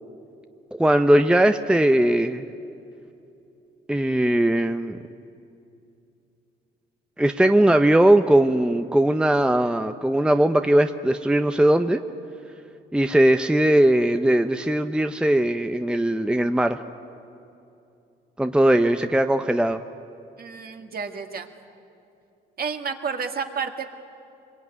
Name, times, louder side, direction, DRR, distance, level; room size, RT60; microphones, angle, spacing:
voice 1, 0.7-2.4 3.9-5.0 7.2-12.0 12.9-16.8 18.4-19.8, right 1 dB, 5° right, 8 dB, 0.7 m, -19 dB
voice 2, 20.4-21.5 22.6-23.9, right 5 dB, 50° right, 5 dB, 2.1 m, -30 dB
24.0 x 22.0 x 9.5 m, 2.6 s
cardioid pair, 90°, 20 cm